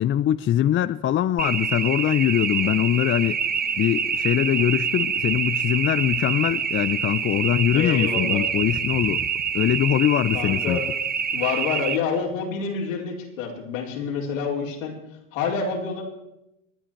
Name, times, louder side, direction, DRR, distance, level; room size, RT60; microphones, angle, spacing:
voice 1, 0.0-3.4 3.8-9.2 9.5-10.8, left 11 dB, 30° left, 0.6 m, -22 dB
sound 1, 1.4-12.0, right 7 dB, 25° right, 1.0 m, -26 dB
voice 2, 7.7-8.4 10.3-10.8 11.3-14.9 15.3-16.0, left 5 dB, 80° left, 4.4 m, -27 dB
27.5 x 10.0 x 4.6 m
hypercardioid pair, 85°, 39 cm